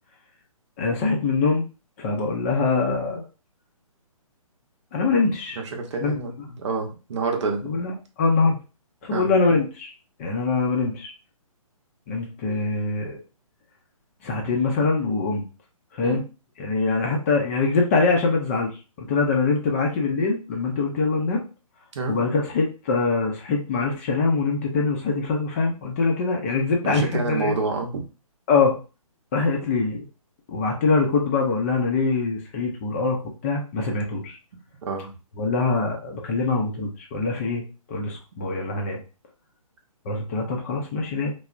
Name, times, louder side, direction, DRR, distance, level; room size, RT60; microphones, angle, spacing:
voice 1, 0.8-1.6 2.0-3.2 4.9-5.6 6.0-6.5 7.6-8.6 9.0-9.9 10.2-11.1 12.1-13.2 14.2-15.4 15.9-16.2 16.6-18.7 19.0-21.4 22.1-27.6 28.5-28.8 29.3-30.0 30.5-34.4 35.4-37.6 37.9-39.0 40.1-41.3, left 4 dB, 25° left, 1 dB, 0.4 m, -23 dB
voice 2, 5.6-7.7 9.1-9.3 16.0-16.2 21.9-22.1 26.8-28.0 34.9-35.1, right 4 dB, 55° right, 2 dB, 0.7 m, -28 dB
3.2 x 2.0 x 2.4 m, 0.32 s
figure-of-eight pair, 140°, 18 cm